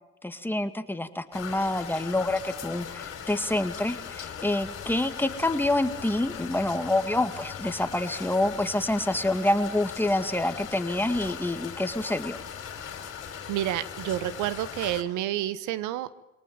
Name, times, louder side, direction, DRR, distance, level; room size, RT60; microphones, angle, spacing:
voice 1, 0.2-12.4, left 1 dB, 5° left, 8 dB, 2.0 m, -27 dB
sound 1, 1.3-15.0, left 8 dB, 45° left, 4.1 m, -39 dB
voice 2, 13.3-16.1, right 13 dB, 70° right, 16 dB, 1.2 m, -29 dB
24.0 x 19.0 x 8.7 m, 1.0 s
supercardioid pair, 80°, 31 cm